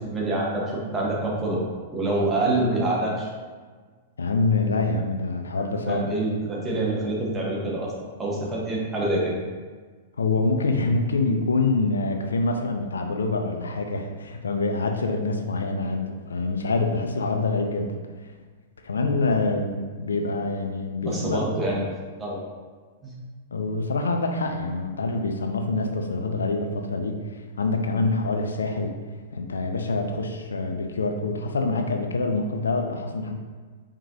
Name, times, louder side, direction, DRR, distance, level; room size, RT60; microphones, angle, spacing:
voice 1, 0.0-1.6 1.9-3.3 5.6-7.9 8.2-9.3 21.0-21.8 22.2-22.4 23.0-23.2, right 2 dB, 15° right, -5 dB, 1.3 m, -26 dB
voice 2, 4.2-6.0 10.2-17.9 18.8-21.4 23.5-29.0 29.3-33.4, left 3 dB, 75° left, 4 dB, 0.4 m, -26 dB
4.7 x 3.6 x 2.8 m, 1.5 s
figure-of-eight pair, 100°, 0 cm